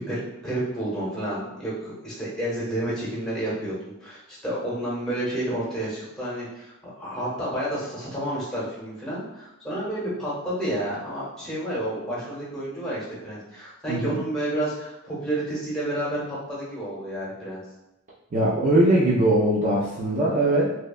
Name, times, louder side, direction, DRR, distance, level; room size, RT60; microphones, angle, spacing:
voice 1, 0.0-17.6, right 1 dB, 5° left, -8 dB, 0.8 m, -30 dB
voice 2, 18.3-20.7, right 1 dB, 35° right, -6 dB, 0.3 m, -21 dB
2.7 x 2.2 x 2.3 m, 0.91 s
head